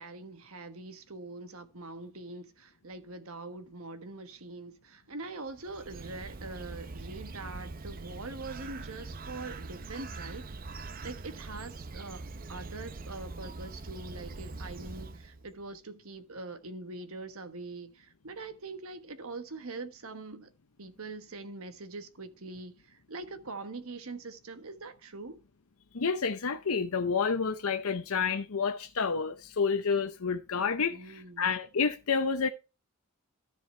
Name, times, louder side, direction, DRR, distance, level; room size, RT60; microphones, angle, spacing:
voice 1, 0.0-10.5 11.0-12.2 12.5-20.5 20.8-25.4 30.9-31.5, right 3 dB, 75° right, 1.3 m, -43 dB
Bird, 5.5-15.5, right 3 dB, 40° right, 0.6 m, -43 dB
voice 2, 25.9-32.5, left 5 dB, 75° left, 0.7 m, -29 dB
13.5 x 5.0 x 4.4 m
head